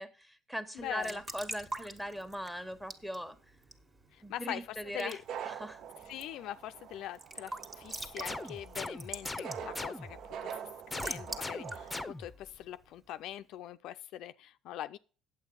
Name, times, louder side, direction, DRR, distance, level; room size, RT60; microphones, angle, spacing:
voice 1, 0.0-3.4 4.2-5.2 5.4-5.8, equal, 5° right, 1.4 m, -40 dB
voice 2, 0.8-1.2 4.1-5.2 6.1-10.6 10.9-15.0, left 12 dB, 70° left, 0.4 m, -43 dB
Raindrop / Drip / Trickle dribble, 0.8-13.2, right 2 dB, 30° right, 1.6 m, -47 dB
sound 1, 5.1-12.0, right 8 dB, 60° right, 0.5 m, -45 dB
sound 2, 8.2-10.3 10.9-12.5, left 2 dB, 15° left, 0.7 m, -41 dB
8.7 x 7.9 x 5.5 m
supercardioid pair, 70°, 0 cm